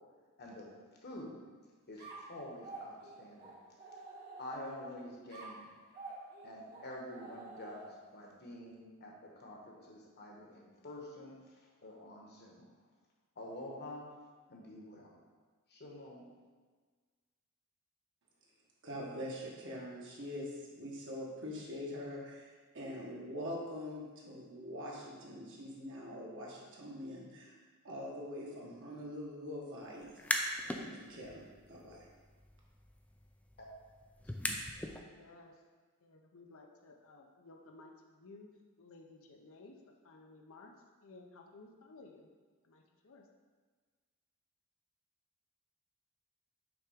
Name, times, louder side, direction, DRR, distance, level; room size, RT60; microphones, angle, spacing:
voice 1, 1.0-1.4 1.9-3.5 4.4-5.7 6.4-11.4 11.8-12.7 13.4-14.1 14.5-15.2 15.7-16.3 34.2-34.3, left 1 dB, 50° left, -1 dB, 1.2 m, -48 dB
sound 1, 2.0-4.8 5.3-8.2, right 3 dB, 45° right, 1.3 m, -50 dB
voice 2, 18.8-27.6 27.8-30.1 30.4-31.4 31.7-32.0, left 1 dB, 60° right, -3 dB, 1.4 m, -44 dB
sound 2, 30.0-30.8 31.2-35.0, left 1 dB, 5° left, 0.4 m, -40 dB
voice 3, 35.0-35.5 36.0-38.5 38.8-39.8 40.0-40.7 41.0-42.3 42.6-43.2, left 3 dB, 65° left, 2 dB, 0.7 m, -56 dB
6.0 x 3.5 x 5.1 m, 1.5 s
head